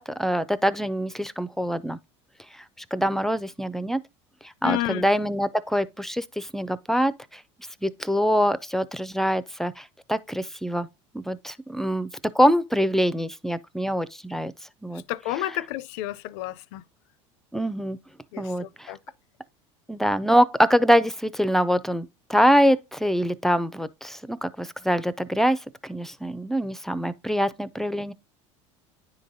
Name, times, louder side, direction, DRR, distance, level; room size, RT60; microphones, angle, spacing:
voice 1, 0.0-2.0 2.5-2.6 2.9-4.0 4.4-7.4 7.8-10.9 11.1-12.1 12.3-14.5 14.8-15.0 17.5-18.0 18.4-18.9 19.9-28.1, equal, ahead, 0.4 m, -24 dB
voice 2, 4.6-5.1 15.1-16.8 18.3-19.0, left 15 dB, 70° left, 0.4 m, -31 dB
9.9 x 3.8 x 2.6 m
hypercardioid pair, 90°, 16 cm